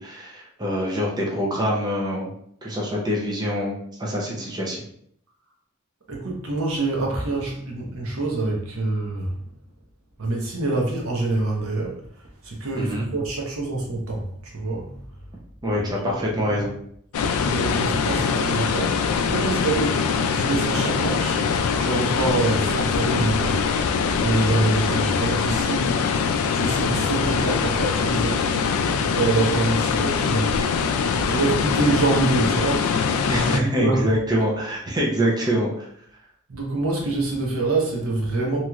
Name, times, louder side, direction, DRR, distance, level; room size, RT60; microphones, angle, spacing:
voice 1, 0.0-2.3 2.6-4.8 12.8-13.1 15.6-16.7 33.3-35.9, equal, 20° right, -3 dB, 0.5 m, -25 dB
voice 2, 6.1-9.4 10.2-14.9 16.0-16.6 17.2-21.4 21.8-26.0 26.5-28.4 29.1-34.1 36.5-38.6, right 2 dB, 80° right, -1 dB, 0.9 m, -26 dB
sound 1, 17.1-33.6, left 5 dB, 85° left, 0.3 m, -23 dB
3.0 x 2.9 x 2.4 m, 0.67 s
head